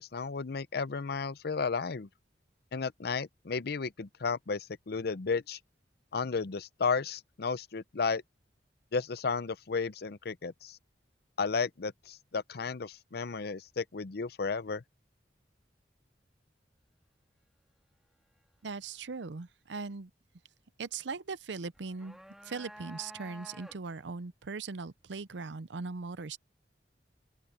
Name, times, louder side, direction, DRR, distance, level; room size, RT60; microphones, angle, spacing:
voice 1, 0.0-2.1 2.7-5.6 6.1-8.2 8.9-10.8 11.4-14.8, left 5 dB, 60° left, 0.6 m, -33 dB
voice 2, 18.6-20.1 20.8-22.2 22.4-26.4, right 4 dB, 85° right, 0.7 m, -39 dB
sound 1, 21.7-24.1, equal, ahead, 2.5 m, -50 dB
open air
head